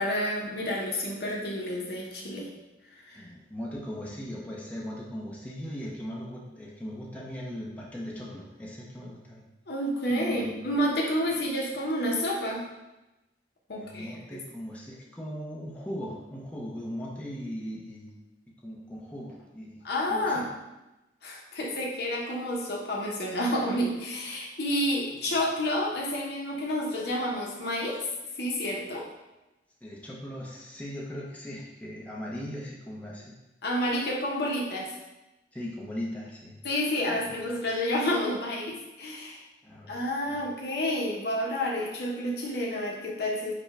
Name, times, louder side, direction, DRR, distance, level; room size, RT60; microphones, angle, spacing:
voice 1, 0.0-2.5 2.9-3.2 9.7-12.6 13.7-14.4 19.8-20.5 21.2-28.1 28.4-29.1 33.6-35.0 36.6-39.4 39.9-43.5, left 1 dB, 65° left, -1 dB, 0.8 m, -30 dB
voice 2, 3.1-9.4 10.1-10.7 13.8-18.1 18.6-19.8 20.1-20.5 29.8-33.4 35.5-36.6 37.1-37.4 39.6-40.0 40.3-40.4, equal, 10° left, -5 dB, 0.7 m, -38 dB
5.1 x 2.2 x 4.7 m, 0.99 s
head